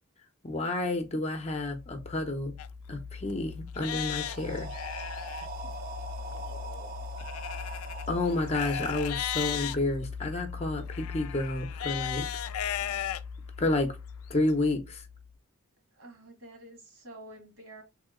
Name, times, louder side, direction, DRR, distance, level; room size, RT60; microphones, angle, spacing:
voice 1, 0.4-2.5 2.9-4.7 8.1-12.3 13.6-14.0 14.3-15.0, left 2 dB, 30° left, 0.6 m, -30 dB
sound 1, 0.9-15.4, left 5 dB, 85° right, 0.6 m, -42 dB
Livestock farm animals working animals, 2.6-2.7 3.3-3.4 3.7-5.5 7.2-9.8 10.9-13.2 13.8-13.9 14.5-14.6, left 11 dB, 75° left, 0.4 m, -35 dB
sound 2, 4.1-10.0, right 3 dB, 40° right, 0.6 m, -43 dB
voice 2, 6.2-7.0 12.8-13.1 16.0-17.8, right 1 dB, 65° right, 1.8 m, -49 dB
3.6 x 2.7 x 3.6 m
head